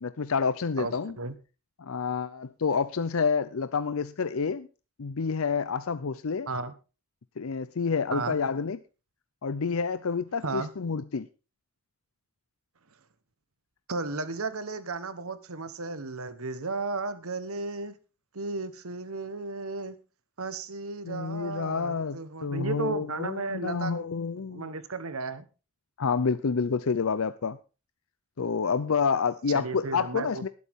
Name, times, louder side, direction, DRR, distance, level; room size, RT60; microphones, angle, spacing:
voice 1, 0.0-1.1 1.8-4.7 5.0-6.5 7.4-8.8 9.4-11.3 21.0-24.7 26.0-27.6 28.4-30.5, left 5 dB, 70° left, 12 dB, 0.6 m, -28 dB
voice 2, 0.8-1.3 6.5-6.7 8.1-8.4 10.4-10.7 13.9-18.0 18.3-20.0 20.4-24.0 24.5-25.4 29.5-30.5, right 3 dB, 75° right, 12 dB, 1.3 m, -34 dB
20.0 x 8.4 x 3.6 m, 0.33 s
head